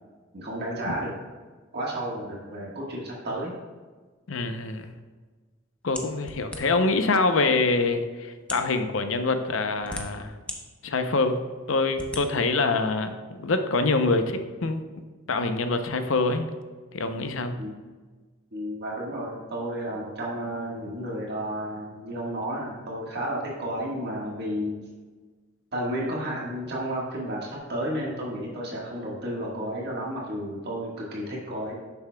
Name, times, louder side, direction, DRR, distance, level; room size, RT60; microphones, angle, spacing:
voice 1, 0.3-1.1 1.7-3.5 17.6-17.7 18.5-24.8 25.7-31.8, right 1 dB, 50° right, -4 dB, 1.5 m, -32 dB
voice 2, 4.3-4.9 5.8-10.3 10.8-11.4 11.7-13.1 13.4-14.8 15.3-16.5 16.9-17.6, left 3 dB, 65° left, 8 dB, 0.6 m, -25 dB
sound 1, 5.9-6.9 7.7-7.8 8.4-8.7 9.5-10.6 11.1-11.2 11.9-12.2, left 1 dB, 5° left, 0.7 m, -37 dB
11.0 x 7.0 x 2.2 m, 1.4 s
head